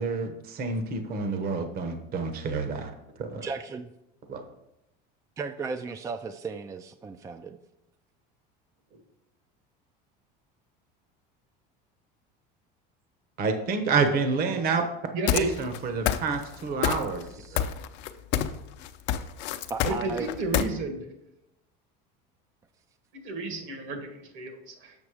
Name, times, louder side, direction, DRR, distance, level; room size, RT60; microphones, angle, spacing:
voice 1, 0.0-2.9 3.2-3.5 4.3-4.4 13.4-14.8 15.3-17.7, right 4 dB, 45° right, 7 dB, 1.1 m, -28 dB
voice 2, 3.4-3.9 5.4-7.6 17.4-17.6 19.7-20.3, right 4 dB, 15° right, 9 dB, 0.3 m, -35 dB
voice 3, 15.1-15.5 19.8-21.0 23.1-25.0, right 3 dB, 65° right, 5 dB, 1.8 m, -33 dB
sound 1, 15.3-15.8 16.1-16.5 16.8-17.3 17.6-18.6 18.8-20.7, left 11 dB, 60° left, 0.6 m, -26 dB
7.3 x 5.9 x 4.8 m, 0.88 s
supercardioid pair, 125°, 21 cm